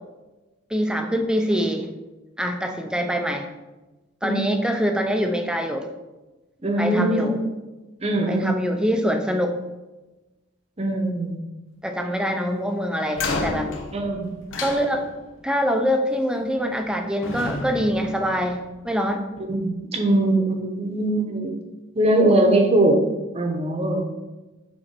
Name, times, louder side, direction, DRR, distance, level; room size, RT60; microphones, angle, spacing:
voice 1, 0.7-1.9 2.4-3.5 4.2-5.9 6.8-7.4 8.3-9.6 11.8-13.7 14.6-15.1 15.4-19.3, equal, 5° right, 4 dB, 0.5 m, -24 dB
voice 2, 6.6-7.4 8.0-8.5 10.8-11.4 13.9-14.3 19.4-21.5 21.9-23.0 23.3-24.1, right 1 dB, 30° right, 3 dB, 0.9 m, -21 dB
sound 1, 13.1-15.4 16.5-16.9 17.2-19.0, left 3 dB, 80° left, 0.9 m, -31 dB
7.6 x 4.2 x 4.4 m, 1.1 s
head